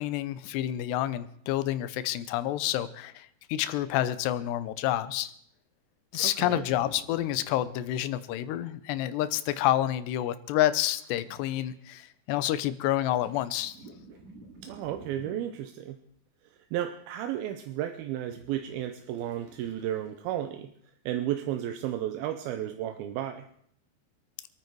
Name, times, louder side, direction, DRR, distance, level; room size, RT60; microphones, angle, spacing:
voice 1, 0.0-5.3 6.1-13.7, left 13 dB, 80° left, 14 dB, 2.9 m, -29 dB
voice 2, 6.1-6.7 14.6-16.0 16.7-20.7 21.1-23.5, right 11 dB, 75° right, 8 dB, 2.3 m, -33 dB
sound 1, 6.6-7.7 8.0-8.1 11.0-11.6 13.1-15.7 17.9-20.4 20.8-20.9, right 2 dB, 50° right, 3.5 m, -52 dB
27.5 x 9.4 x 4.6 m, 0.68 s
omnidirectional pair, 4.9 m